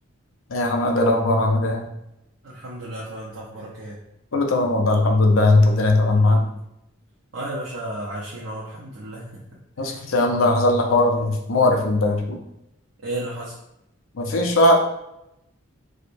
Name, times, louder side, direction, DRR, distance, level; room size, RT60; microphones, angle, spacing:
voice 1, 0.5-1.8 4.3-6.5 9.8-12.4 14.2-14.7, left 2 dB, 75° left, 2 dB, 0.6 m, -19 dB
voice 2, 2.4-4.0 6.3-6.6 7.3-9.3 9.8-10.0 13.0-13.5, right 1 dB, 65° right, -6 dB, 0.7 m, -33 dB
4.7 x 2.1 x 2.6 m, 0.84 s
head